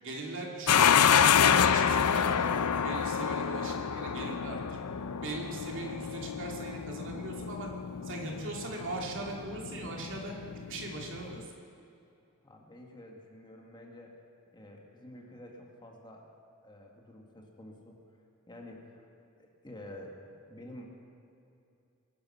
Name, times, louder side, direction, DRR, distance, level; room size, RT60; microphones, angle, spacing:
voice 1, 0.0-0.8 1.1-2.5 2.8-4.8 5.2-7.7 8.0-10.3 10.7-11.5, right 2 dB, 60° right, 0 dB, 2.6 m, -40 dB
sound 1, 0.7-11.4, left 7 dB, 90° left, 0.6 m, -28 dB
voice 2, 12.4-14.2 14.5-16.3 16.6-18.0 18.5-19.0 19.4-20.9, left 1 dB, 20° left, 0 dB, 1.9 m, -49 dB
23.5 x 10.5 x 5.7 m, 2.7 s
head